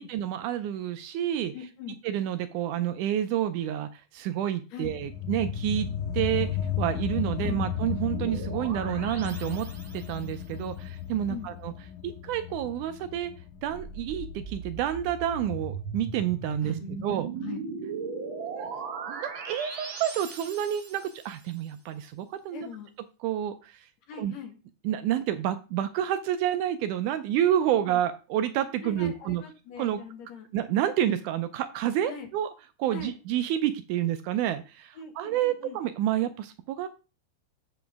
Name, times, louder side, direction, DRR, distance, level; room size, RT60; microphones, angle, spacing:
voice 1, 0.0-1.5 2.0-5.9 6.1-6.5 6.8-9.7 9.9-11.7 12.0-13.3 13.6-17.3 18.6-18.7 19.1-22.7 23.2-23.9 24.2-24.3 24.8-29.4 29.8-30.0 30.5-32.5 32.8-36.9, right 11 dB, 80° right, 10 dB, 1.9 m, -29 dB
voice 2, 1.5-2.0 4.7-4.9 7.4-7.6 11.3-11.5 16.6-17.6 22.5-22.9 24.1-24.6 27.7-28.0 28.8-30.5 32.1-32.3 32.9-33.1 34.9-35.8, left 6 dB, 65° left, 5 dB, 1.9 m, -42 dB
sound 1, 4.8-15.9, left 10 dB, 85° left, 2.6 m, -35 dB
sound 2, 7.2-10.3 13.6-21.3, right 4 dB, 50° right, 1.6 m, -38 dB
7.9 x 7.2 x 3.4 m, 0.32 s
omnidirectional pair, 3.8 m